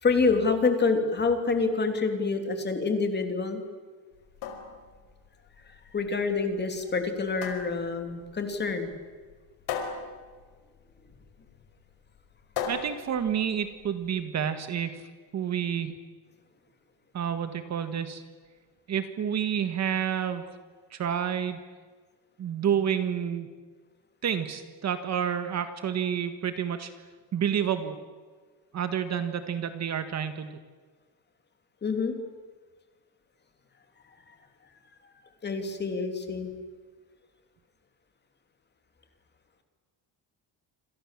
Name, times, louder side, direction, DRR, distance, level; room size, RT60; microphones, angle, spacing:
voice 1, 0.0-3.6 5.7-8.9 12.6-12.7 31.8-32.1 34.3-34.4 35.4-36.5, left 4 dB, 20° left, 6 dB, 2.9 m, -27 dB
sound 1, 4.1-14.1, left 6 dB, 70° left, 5.3 m, -39 dB
voice 2, 12.7-15.0 15.3-15.9 17.1-18.2 18.9-20.4 20.9-21.6 22.4-23.5 24.2-26.9 27.3-28.0 28.7-30.5, right 8 dB, 35° right, 9 dB, 1.6 m, -29 dB
28.0 x 27.0 x 7.5 m, 1.5 s
cardioid pair, 180°, 45 cm